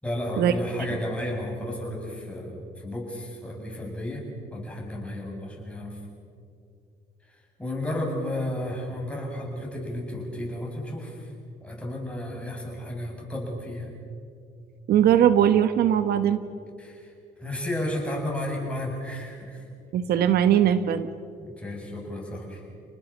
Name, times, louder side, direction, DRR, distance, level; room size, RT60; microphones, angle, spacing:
voice 1, 0.0-4.3 4.5-6.0 7.6-11.3 11.6-13.9 16.8-17.1 17.4-19.7 21.4-22.6, left 1 dB, 5° left, -2 dB, 7.6 m, -33 dB
voice 2, 14.9-16.4 19.9-21.1, right 10 dB, 65° right, 12 dB, 1.1 m, -20 dB
30.0 x 19.5 x 7.5 m, 2.4 s
cardioid pair, 110°, 17 cm